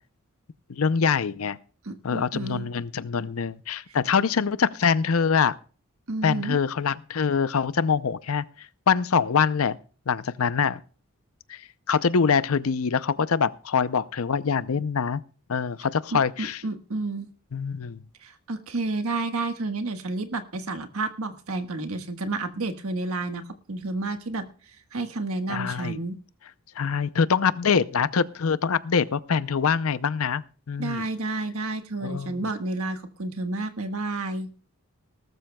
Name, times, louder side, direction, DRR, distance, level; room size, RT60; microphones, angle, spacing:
voice 1, 0.7-1.6 2.0-5.5 6.2-8.4 8.9-9.8 10.1-10.8 11.5-11.6 11.9-15.2 15.5-16.6 17.5-18.0 25.5-26.0 26.8-31.0 32.0-32.4, left 6 dB, 75° left, 16 dB, 0.6 m, -24 dB
voice 2, 1.8-2.7 6.1-6.6 16.1-17.3 18.2-23.4 23.7-24.4 24.9-26.2 30.8-34.5, right 2 dB, 80° right, 7 dB, 1.4 m, -30 dB
19.0 x 13.0 x 2.3 m, 0.39 s
head